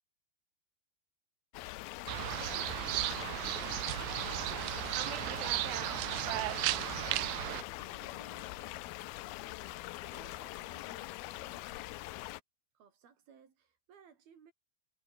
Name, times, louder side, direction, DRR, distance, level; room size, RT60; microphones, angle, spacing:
sound 1, 1.5-12.4, left 19 dB, 80° left, 2.4 m, -43 dB
sound 2, 2.1-7.6, right 19 dB, 80° right, 2.9 m, -35 dB
voice 1, 2.9-11.8 12.7-14.5, right 7 dB, 65° right, 4.9 m, -62 dB
omnidirectional pair, 4.8 m